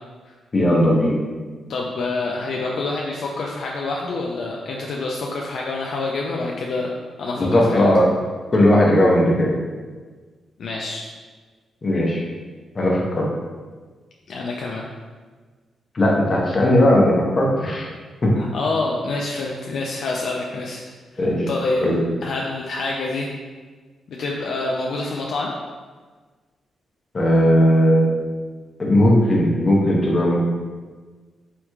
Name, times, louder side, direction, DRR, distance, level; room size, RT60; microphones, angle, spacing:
voice 1, 0.5-1.2 7.4-8.1 8.5-9.5 11.8-12.2 12.7-13.3 15.9-17.9 18.2-18.3 21.2-21.5 21.8-22.0 27.1-28.1 28.8-30.4, left 1 dB, 40° left, -2 dB, 0.7 m, -17 dB
voice 2, 1.7-6.9 7.2-7.9 10.6-11.1 14.3-14.9 18.4-20.8 21.1-21.9 22.2-23.3 24.1-25.5, left 3 dB, 70° left, -2 dB, 0.3 m, -27 dB
3.3 x 3.0 x 2.3 m, 1.4 s
cardioid pair, 75°, 0 cm